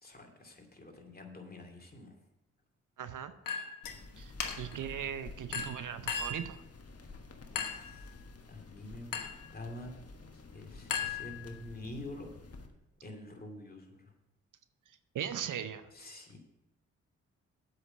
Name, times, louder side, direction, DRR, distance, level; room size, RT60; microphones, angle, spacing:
voice 1, 0.0-2.2 7.5-8.2 8.5-9.3 9.5-9.9 10.3-12.7 13.0-14.1 15.9-16.4, left 1 dB, 25° left, 2 dB, 2.6 m, -47 dB
voice 2, 3.0-3.3 4.2-4.3 4.6-6.6 15.1-15.8, right 9 dB, 65° right, 12 dB, 0.7 m, -38 dB
Chink clink, 3.5-4.0 4.4-4.8 5.5-6.5 7.6-7.9 9.1-9.5 10.9-11.7, left 6 dB, 75° left, 1.2 m, -37 dB
sound 1, 3.8-12.7, left 3 dB, 45° left, 1.4 m, -51 dB
7.9 x 5.9 x 7.9 m, 0.92 s
supercardioid pair, 40°, 34 cm